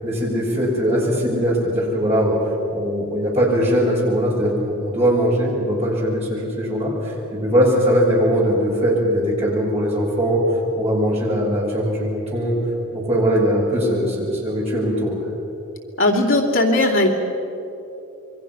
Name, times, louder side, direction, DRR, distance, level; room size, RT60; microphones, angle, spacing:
voice 1, 0.0-2.4 2.7-10.4 10.8-12.5 12.9-15.2, equal, 30° right, -4 dB, 7.1 m, -20 dB
voice 2, 16.0-17.1, left 2 dB, 60° left, -1 dB, 2.6 m, -17 dB
27.5 x 24.0 x 6.1 m, 2.9 s
head